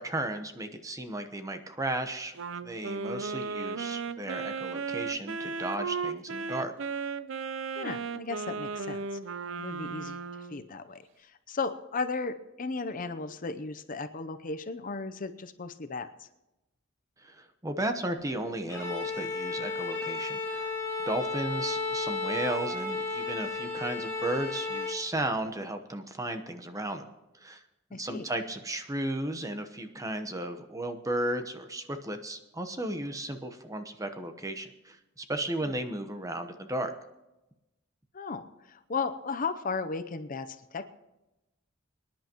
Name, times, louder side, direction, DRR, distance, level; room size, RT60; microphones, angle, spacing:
voice 1, 0.0-2.4 2.6-6.7 17.2-20.7 21.1-27.1 27.4-27.6 27.9-36.9, right 1 dB, 15° right, 7 dB, 1.0 m, -34 dB
Wind instrument woodwind instrument, 2.3-10.6, right 4 dB, 70° right, 0.6 m, -35 dB
voice 2, 7.8-9.1 9.6-10.2 10.5-16.1 27.9-28.3 35.6-35.7 38.1-40.9, left 4 dB, 45° left, 11 dB, 0.7 m, -35 dB
Bowed string instrument, 18.7-25.1, left 3 dB, 15° left, 4.8 m, -33 dB
24.5 x 10.5 x 3.0 m, 0.97 s
head